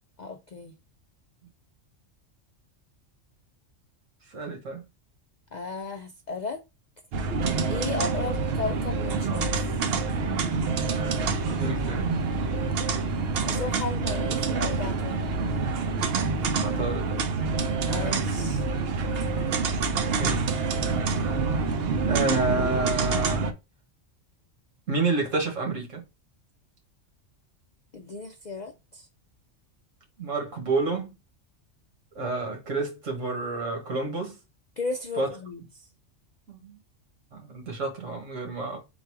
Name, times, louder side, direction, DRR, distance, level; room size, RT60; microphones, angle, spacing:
voice 1, 0.2-0.7 5.5-6.6 7.7-9.8 13.4-15.3 17.9-18.7 27.9-29.1 34.8-35.9, left 4 dB, 60° left, 0.4 m, -35 dB
voice 2, 4.3-4.9 11.5-12.1 16.6-17.2 19.4-19.5 20.2-20.4 22.1-23.5 24.9-26.0 30.2-31.2 32.2-34.4 35.2-35.3 36.5-36.8 37.3-38.8, right 3 dB, 80° right, 1.8 m, -29 dB
sound 1, 7.1-23.5, right 4 dB, 60° right, 0.7 m, -27 dB
4.0 x 2.4 x 4.6 m
omnidirectional pair, 1.3 m